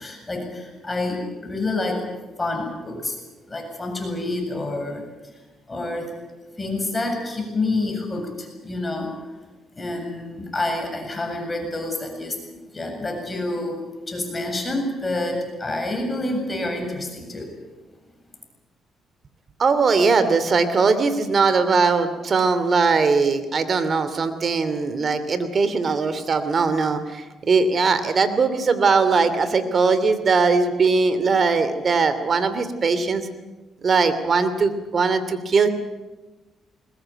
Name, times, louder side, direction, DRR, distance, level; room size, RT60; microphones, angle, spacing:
voice 1, 0.0-2.1 2.4-3.2 3.5-5.0 5.7-6.1 6.6-9.1 9.8-17.5, left 2 dB, 20° left, 3 dB, 7.6 m, -28 dB
voice 2, 19.6-33.3 33.8-35.7, right 4 dB, 45° right, 11 dB, 2.8 m, -20 dB
21.5 x 20.5 x 9.1 m, 1.2 s
cardioid pair, 90°, 0 cm